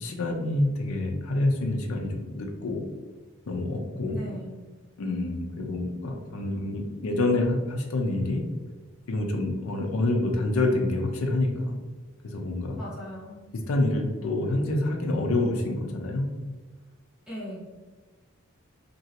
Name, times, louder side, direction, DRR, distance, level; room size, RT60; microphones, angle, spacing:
voice 1, 0.0-2.8 3.5-4.2 5.0-8.4 9.1-11.8 12.2-12.8 13.5-16.3, left 2 dB, 75° left, 2 dB, 0.5 m, -27 dB
voice 2, 4.1-4.6 12.8-13.4 17.3-17.6, equal, 5° right, -8 dB, 0.9 m, -38 dB
2.9 x 2.6 x 2.8 m, 1.3 s
head